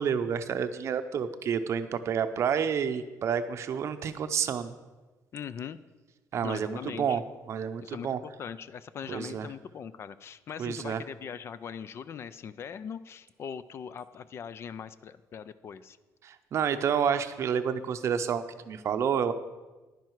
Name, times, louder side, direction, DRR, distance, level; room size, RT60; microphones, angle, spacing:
voice 1, 0.0-4.7 6.3-7.2 7.5-8.2 9.1-9.5 10.6-11.0 16.2-19.3, right 7 dB, 45° right, 10 dB, 0.6 m, -29 dB
voice 2, 5.3-5.8 6.4-7.2 7.8-16.0, left 7 dB, 40° left, 15 dB, 0.4 m, -41 dB
10.5 x 10.5 x 4.6 m, 1.2 s
cardioid pair, 155°, 7 cm